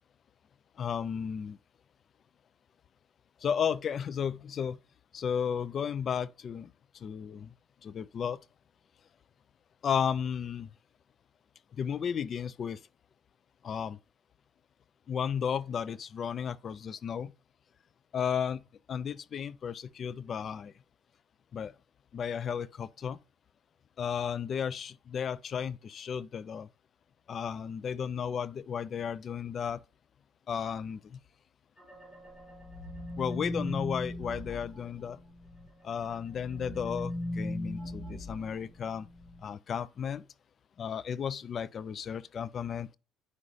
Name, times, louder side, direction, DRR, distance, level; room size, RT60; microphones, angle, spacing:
voice 1, 0.8-1.6 3.4-4.8 5.1-6.7 7.0-7.5 7.8-8.4 9.8-10.7 11.8-12.8 13.6-14.0 15.1-17.3 18.1-18.6 18.9-20.7 21.5-21.7 22.1-23.2 24.0-26.7 27.3-29.8 30.5-31.2 33.2-35.2 35.8-39.1 39.4-40.2 40.8-42.9, left 7 dB, 50° left, 0.5 m, -34 dB
sound 1, 31.8-35.7 36.0-39.4, left 1 dB, 15° left, 2.1 m, -39 dB
9.8 x 5.4 x 3.2 m
supercardioid pair, 85°, 0 cm